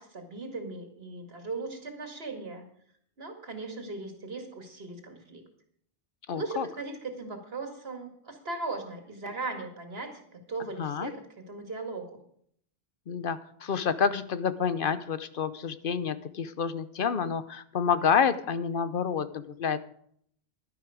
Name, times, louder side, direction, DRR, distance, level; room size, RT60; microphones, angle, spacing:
voice 1, 0.0-2.6 3.2-5.4 6.3-12.2, right 3 dB, 75° right, 4 dB, 2.3 m, -38 dB
voice 2, 6.3-6.7 10.8-11.1 13.1-19.8, left 6 dB, 60° left, 13 dB, 0.9 m, -28 dB
11.5 x 10.5 x 5.0 m, 0.64 s
omnidirectional pair, 1.0 m